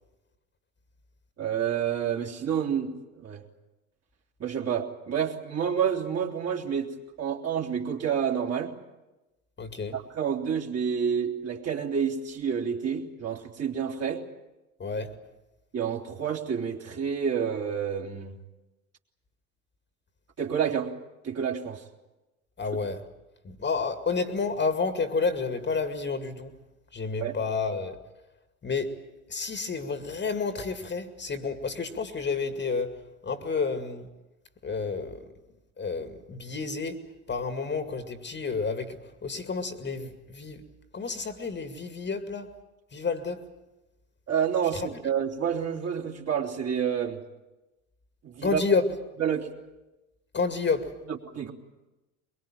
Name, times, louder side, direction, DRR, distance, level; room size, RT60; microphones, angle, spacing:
voice 1, 1.4-3.4 4.4-8.7 9.9-14.2 15.7-18.4 20.4-20.9 21.2-21.8 27.2-27.4 44.3-47.2 48.2-48.6 49.2-49.5 51.1-51.5, right 7 dB, 35° right, 3.2 m, -29 dB
voice 2, 9.6-9.9 14.8-15.1 22.6-23.0 23.4-26.5 26.9-28.0 28.6-28.9 29.3-32.9 33.2-34.1 34.6-35.2 35.8-40.6 40.9-42.5 42.9-43.4 48.4-48.8 50.3-50.9, left 4 dB, 25° left, 2.3 m, -30 dB
23.0 x 22.5 x 9.0 m
hypercardioid pair, 80°, 45 cm